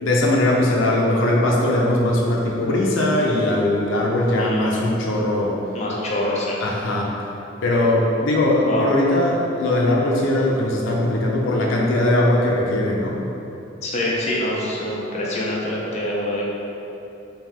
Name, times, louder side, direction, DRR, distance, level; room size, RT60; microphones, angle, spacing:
voice 1, 0.0-5.6 6.6-7.1 7.6-13.2, left 1 dB, 85° left, -2 dB, 0.6 m, -20 dB
voice 2, 4.4-4.8 5.7-6.6 8.6-8.8 13.8-16.4, left 1 dB, 35° left, -5 dB, 0.6 m, -25 dB
3.4 x 2.7 x 3.5 m, 2.9 s
head